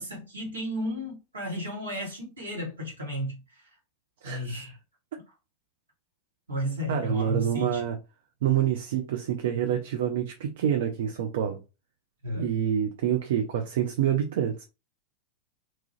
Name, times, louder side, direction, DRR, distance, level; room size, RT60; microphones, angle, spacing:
voice 1, 0.0-3.6 4.2-4.8 6.5-7.8 12.2-12.5, equal, 75° right, 1.3 m, -33 dB
voice 2, 6.9-8.0 8.4-11.6 12.3-14.6, right 9 dB, 55° right, 0.4 m, -27 dB
2.8 x 2.3 x 3.0 m
figure-of-eight pair, 90°, 0 cm